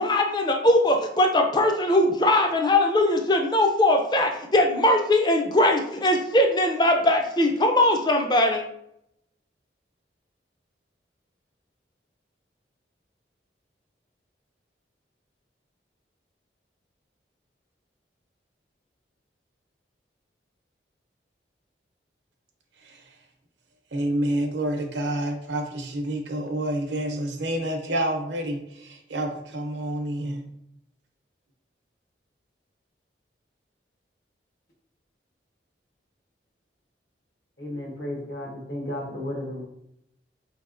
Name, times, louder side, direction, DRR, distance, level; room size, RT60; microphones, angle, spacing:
voice 1, 0.0-8.7, left 1 dB, 25° left, 4 dB, 0.4 m, -21 dB
voice 2, 23.9-30.4, right 1 dB, 80° right, 3 dB, 0.7 m, -28 dB
voice 3, 37.6-39.6, left 1 dB, 70° left, -1 dB, 1.1 m, -33 dB
4.1 x 3.3 x 2.5 m, 0.76 s
head